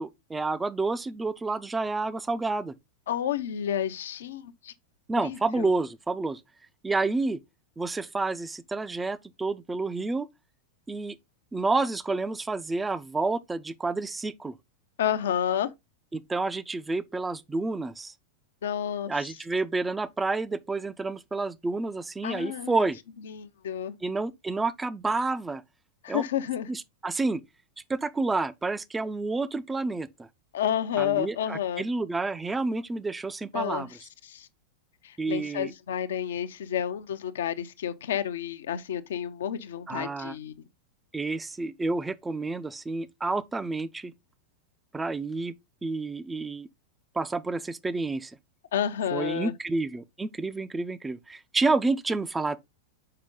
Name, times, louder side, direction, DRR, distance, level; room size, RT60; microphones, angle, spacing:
voice 1, 0.0-2.7 5.1-6.4 6.8-7.4 7.8-10.3 10.9-11.2 11.5-14.5 16.1-18.1 19.1-23.0 24.0-25.6 26.1-26.2 26.7-27.4 27.9-30.3 31.0-33.9 35.2-35.7 39.9-40.4 41.1-44.1 44.9-45.5 45.8-46.7 47.1-48.3 49.1-52.6, right 3 dB, 10° right, 0.5 m, -29 dB
voice 2, 3.1-4.7 5.2-5.7 15.0-15.7 18.6-19.1 22.2-22.9 23.2-24.0 26.0-26.7 30.5-31.8 33.5-33.9 34.2-34.5 35.0-40.5 48.7-49.5, left 10 dB, 60° left, 0.7 m, -30 dB
6.7 x 5.1 x 3.6 m
figure-of-eight pair, 90°, 0 cm